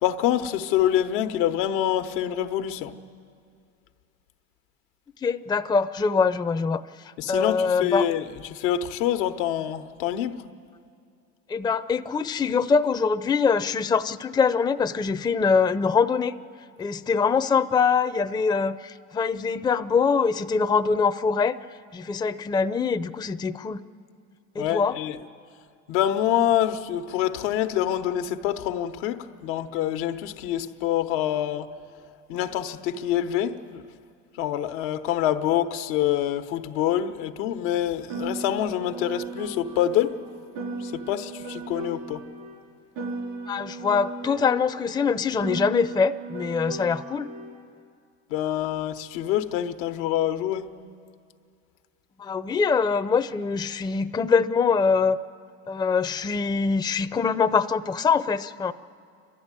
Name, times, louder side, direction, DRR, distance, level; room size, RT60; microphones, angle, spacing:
voice 1, 0.0-2.9 7.2-8.2 8.5-10.4 24.6-25.2 25.9-31.7 32.3-33.8 34.4-40.2 40.8-42.2 48.3-50.7, left 11 dB, 90° left, 1.1 m, -26 dB
voice 2, 5.2-8.1 11.5-16.4 16.8-21.6 21.9-23.8 24.5-25.0 43.5-47.3 52.2-55.2 55.7-58.7, left 5 dB, 15° left, 0.5 m, -23 dB
Piano, 38.1-42.6 42.9-47.6, right 3 dB, 85° right, 5.0 m, -36 dB
29.0 x 13.0 x 9.8 m
cardioid pair, 115°, 34 cm